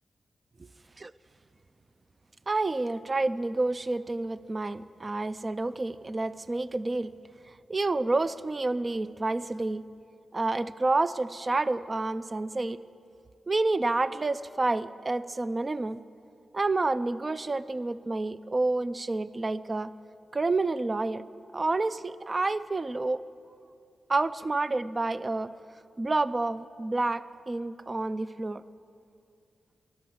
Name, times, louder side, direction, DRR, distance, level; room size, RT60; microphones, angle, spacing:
voice 1, 2.5-7.1 7.7-9.8 10.3-12.8 13.5-16.0 16.5-19.9 20.3-21.2 21.5-23.2 24.1-25.5 26.0-28.6, right 2 dB, 25° right, 16 dB, 0.4 m, -29 dB
14.0 x 11.5 x 8.6 m, 2.5 s
wide cardioid pair, 125°, 0 cm